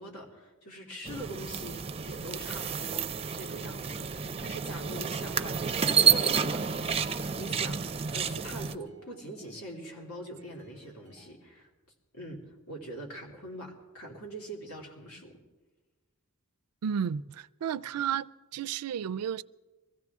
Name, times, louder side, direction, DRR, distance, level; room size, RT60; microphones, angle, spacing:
voice 1, 0.0-11.7 12.1-15.4, right 1 dB, 80° left, 2.8 m, -43 dB
sound 1, 1.1-8.8, right 6 dB, 25° right, 0.5 m, -30 dB
sound 2, 3.9-11.3, right 1 dB, 35° left, 6.2 m, -59 dB
voice 2, 16.8-19.4, right 8 dB, 85° right, 0.4 m, -32 dB
23.5 x 15.5 x 3.6 m
head